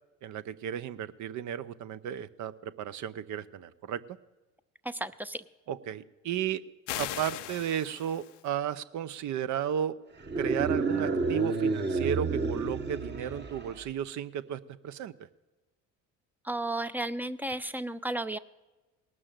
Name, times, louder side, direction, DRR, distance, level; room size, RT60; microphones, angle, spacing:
voice 1, 0.2-4.0 5.7-6.6 7.0-10.0 10.4-15.1, right 9 dB, 55° right, 14 dB, 0.7 m, -34 dB
voice 2, 4.9-5.4 16.5-18.4, right 2 dB, 5° right, 13 dB, 0.5 m, -33 dB
sound 1, 6.9-8.5, left 14 dB, 90° left, 0.6 m, -38 dB
sound 2, 10.2-13.8, right 4 dB, 30° right, 1.3 m, -30 dB
18.5 x 6.3 x 7.5 m, 1.1 s
hypercardioid pair, 65°, 35 cm